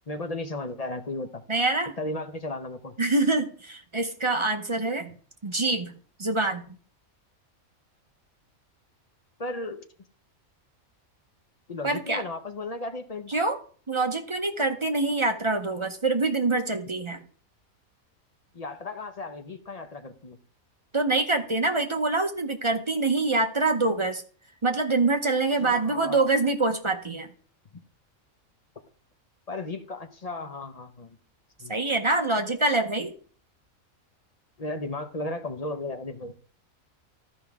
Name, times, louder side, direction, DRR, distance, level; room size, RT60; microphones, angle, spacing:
voice 1, 0.1-1.4 2.0-3.0 9.4-9.8 11.7-13.3 18.5-20.4 25.6-26.3 29.5-31.2 31.6-31.8 34.6-36.3, left 2 dB, 35° left, 7 dB, 0.7 m, -35 dB
voice 2, 1.5-1.9 3.0-5.1 5.4-5.9 6.2-6.8 11.8-12.2 13.3-13.6 13.9-17.2 20.9-24.2 24.6-27.3 31.7-33.1, right 3 dB, 30° right, 5 dB, 0.6 m, -25 dB
13.5 x 5.3 x 3.5 m, 0.43 s
omnidirectional pair, 1.4 m